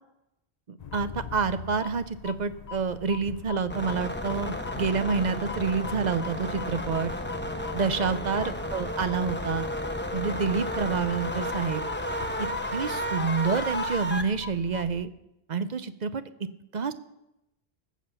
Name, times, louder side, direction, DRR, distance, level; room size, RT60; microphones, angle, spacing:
voice 1, 0.7-7.1 7.7-9.7 10.1-11.8 12.4-15.1 15.5-16.2 16.7-16.9, right 5 dB, 45° right, 12 dB, 0.7 m, -28 dB
sound 1, 0.8-15.0, left 7 dB, 45° left, 0.6 m, -43 dB
sound 2, 3.7-14.2, left 1 dB, 10° left, 0.9 m, -32 dB
18.0 x 7.5 x 7.0 m, 0.90 s
omnidirectional pair, 1.1 m